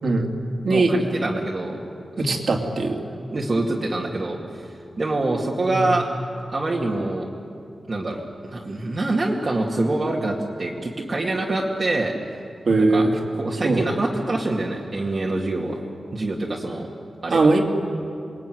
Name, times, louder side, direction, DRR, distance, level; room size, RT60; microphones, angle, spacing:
voice 1, 0.7-1.8 2.3-2.4 3.3-6.1 6.5-7.3 7.9-12.1 12.8-13.1 13.3-15.8 16.1-16.9 17.2-17.5, right 2 dB, 40° right, -3 dB, 2.4 m, -25 dB
voice 2, 2.2-3.0 5.7-5.9 12.7-13.2 13.6-13.8 17.3-17.6, right 3 dB, 60° right, 2 dB, 3.0 m, -20 dB
28.0 x 21.0 x 9.4 m, 2.5 s
wide cardioid pair, 140°, 0 cm